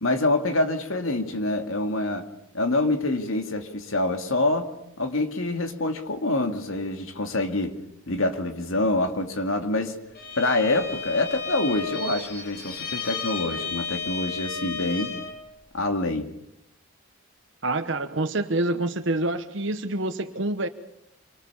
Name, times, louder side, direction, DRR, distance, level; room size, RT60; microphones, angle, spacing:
voice 1, 0.0-2.2 2.5-4.7 5.0-7.8 8.1-10.0 10.4-15.1 15.7-16.3, left 2 dB, 70° left, 6 dB, 2.5 m, -26 dB
Bowed string instrument, 10.1-15.4, left 5 dB, 45° left, 3.7 m, -33 dB
voice 2, 17.6-20.7, right 2 dB, 55° right, 8 dB, 1.1 m, -27 dB
26.5 x 24.5 x 7.1 m, 0.79 s
head